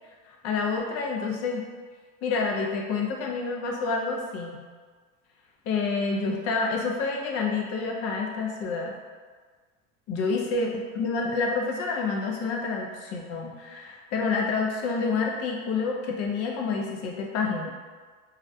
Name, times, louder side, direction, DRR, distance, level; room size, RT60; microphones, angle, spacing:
voice 1, 0.3-1.6 2.2-4.6 5.7-8.9 10.1-17.7, left 4 dB, 40° left, 0 dB, 0.4 m, -28 dB
2.4 x 2.0 x 2.6 m, 1.5 s
supercardioid pair, 130°, 39 cm